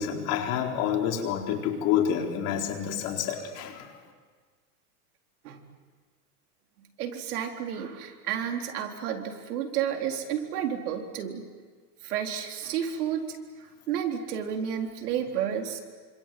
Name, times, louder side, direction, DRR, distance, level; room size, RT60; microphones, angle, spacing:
voice 1, 0.0-3.8, left 9 dB, 40° left, 2 dB, 4.1 m, -28 dB
voice 2, 7.0-11.4 12.0-13.4 13.9-15.8, right 9 dB, 75° right, 3 dB, 4.1 m, -31 dB
28.0 x 26.0 x 7.8 m, 1.5 s
supercardioid pair, 145°, 45 cm